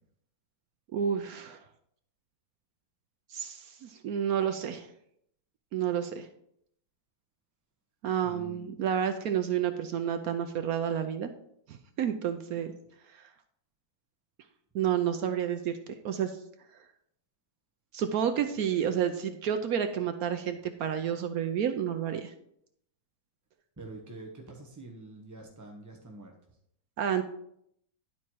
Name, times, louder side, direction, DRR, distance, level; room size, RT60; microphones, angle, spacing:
voice 1, 0.9-1.6 3.3-4.9 5.7-6.3 8.0-11.3 11.7-12.7 14.7-15.7 16.0-16.3 17.9-22.3 27.0-27.2, right 9 dB, 65° right, 7 dB, 1.0 m, -30 dB
voice 2, 8.2-8.7 23.8-26.3, right 2 dB, 20° right, 0 dB, 0.5 m, -46 dB
11.0 x 4.4 x 4.6 m, 0.72 s
omnidirectional pair, 1.9 m